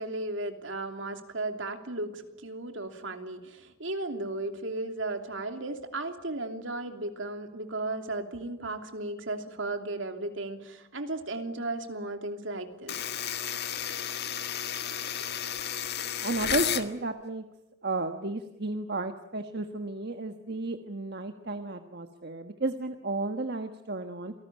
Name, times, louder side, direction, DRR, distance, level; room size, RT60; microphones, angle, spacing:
voice 1, 0.0-13.0, right 2 dB, 70° right, 6 dB, 3.0 m, -35 dB
sound 1, 12.9-16.9, left 9 dB, 55° left, 1.7 m, -32 dB
voice 2, 16.2-17.4 17.8-24.3, right 2 dB, 55° right, 7 dB, 1.4 m, -33 dB
28.0 x 19.0 x 10.0 m, 0.94 s
head